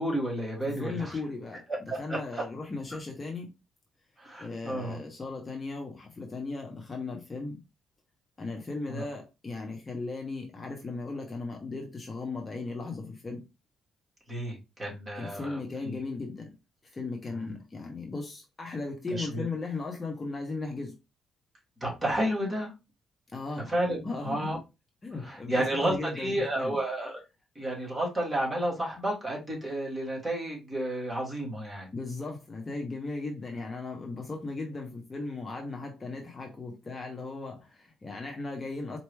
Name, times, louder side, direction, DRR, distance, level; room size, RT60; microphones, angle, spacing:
voice 1, 0.0-1.2 1.9-2.4 2.9-3.0 4.2-5.0 8.9-9.0 14.3-16.0 17.2-17.5 19.1-19.4 21.8-22.7 23.7-24.6 25.2-27.2 27.5-31.9, right 1 dB, 20° right, 2.5 m, -31 dB
voice 2, 0.6-1.6 2.0-3.5 4.4-7.6 8.4-13.4 15.2-16.5 16.9-20.9 23.3-23.7 24.0-24.5 25.0-26.7 31.9-39.0, left 3 dB, 30° left, 1.1 m, -37 dB
4.5 x 2.9 x 3.3 m
cardioid pair, 90°, 0 cm